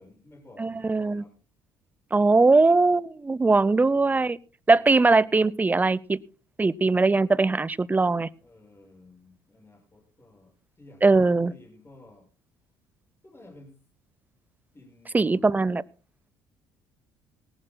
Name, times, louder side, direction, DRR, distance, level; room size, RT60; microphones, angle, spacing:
voice 1, 0.0-1.3 2.3-2.8 3.4-4.3 4.7-5.4 8.4-12.3 13.2-13.8 14.7-15.7, left 2 dB, 25° left, 1 dB, 6.6 m, -53 dB
voice 2, 0.6-1.2 2.1-4.4 4.7-6.2 6.6-8.3 11.0-11.5 15.1-15.8, right 3 dB, 15° right, 23 dB, 0.6 m, -21 dB
19.0 x 18.5 x 2.2 m, 0.35 s
hypercardioid pair, 55°, 10 cm